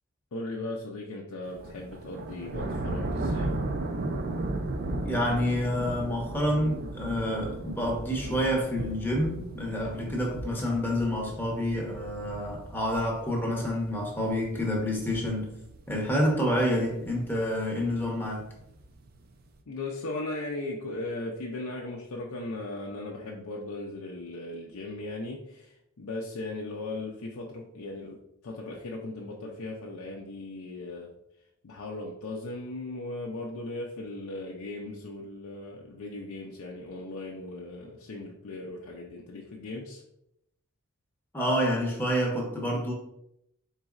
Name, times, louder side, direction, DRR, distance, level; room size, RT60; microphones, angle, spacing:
voice 1, 0.3-3.5 19.7-28.2 28.4-31.1 31.6-40.0, left 2 dB, 75° left, -1 dB, 0.5 m, -37 dB
sound 1, 1.5-19.4, right 2 dB, 45° right, 0.4 m, -36 dB
voice 2, 5.0-15.5 15.9-18.5 41.3-42.9, equal, 10° left, -1 dB, 0.8 m, -28 dB
4.0 x 3.9 x 2.4 m, 0.80 s
head